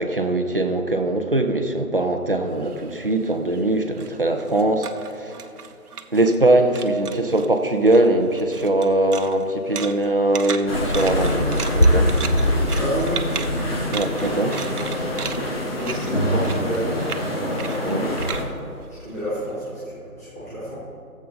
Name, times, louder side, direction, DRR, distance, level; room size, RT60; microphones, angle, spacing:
voice 1, 0.0-5.4 6.1-12.1 13.9-14.6 17.8-18.1, right 1 dB, 40° right, 5 dB, 0.7 m, -21 dB
sound 1, 2.5-6.5 6.7-7.5 7.8-19.7, right 6 dB, 85° right, 0.8 m, -36 dB
sound 2, 10.7-18.4, equal, 40° left, 1.8 m, -23 dB
voice 2, 12.7-13.3 15.7-17.0 18.9-20.7, equal, 10° left, -13 dB, 1.3 m, -29 dB
15.5 x 7.5 x 3.9 m, 2.5 s
figure-of-eight pair, 175°, 44 cm